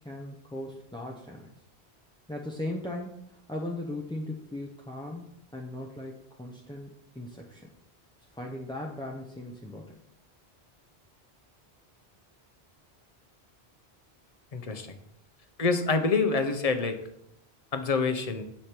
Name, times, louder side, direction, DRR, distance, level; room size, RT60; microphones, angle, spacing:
voice 1, 0.0-1.5 2.3-7.7 8.3-9.9, left 1 dB, 5° left, -1 dB, 0.6 m, -38 dB
voice 2, 14.5-14.9 15.6-17.0 17.7-18.4, left 4 dB, 40° left, 7 dB, 0.9 m, -26 dB
8.6 x 5.0 x 4.4 m, 0.76 s
omnidirectional pair, 1.1 m